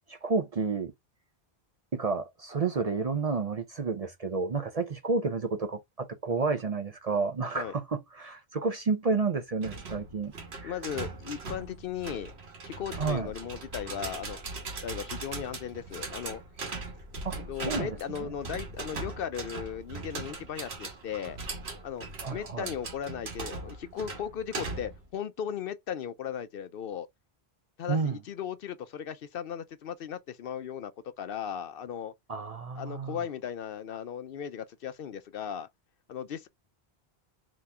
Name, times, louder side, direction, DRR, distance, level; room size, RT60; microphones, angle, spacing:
voice 1, 0.1-0.9 1.9-10.7 13.0-13.3 17.2-18.3 22.2-22.7 27.9-28.2 32.3-33.2, right 4 dB, 45° right, 0.6 m, -31 dB
sound 1, 9.6-25.0, right 3 dB, 75° right, 1.5 m, -40 dB
voice 2, 10.6-12.3 12.6-14.4 14.8-16.7 17.4-21.4 21.8-27.1 27.8-30.9 31.2-32.1 32.7-35.7 36.1-36.5, left 8 dB, 65° left, 0.7 m, -37 dB
4.1 x 3.0 x 3.3 m
omnidirectional pair, 1.1 m